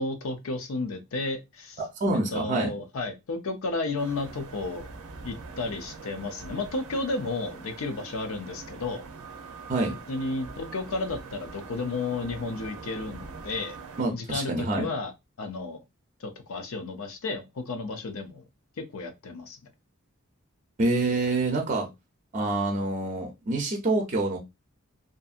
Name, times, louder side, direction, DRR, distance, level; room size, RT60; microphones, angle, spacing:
voice 1, 0.0-1.8 2.3-4.9 5.2-9.0 10.1-13.8 14.1-15.1 15.4-15.8 16.2-18.4 18.8-19.6, left 3 dB, 70° left, 0.5 m, -32 dB
voice 2, 1.8-2.7 9.7-9.9 14.0-14.9 20.8-21.9 22.3-24.4, right 2 dB, 35° right, 0.5 m, -26 dB
sound 1, 4.0-14.0, right 4 dB, 85° right, 0.6 m, -43 dB
2.6 x 2.5 x 2.4 m
head